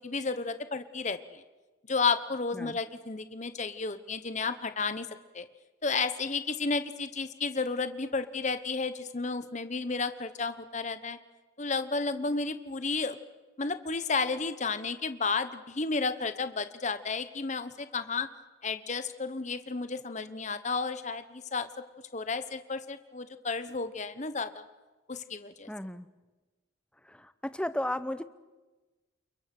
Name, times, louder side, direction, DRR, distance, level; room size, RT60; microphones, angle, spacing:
voice 1, 0.0-1.4 1.9-5.1 5.3-5.5 5.8-11.2 11.6-13.2 13.6-18.3 18.6-21.7 22.1-24.6 25.1-25.7, left 4 dB, 35° left, 11 dB, 1.0 m, -32 dB
voice 2, 25.7-26.1 27.0-28.2, left 1 dB, 5° left, 13 dB, 0.7 m, -34 dB
30.0 x 22.0 x 6.0 m, 1.2 s
head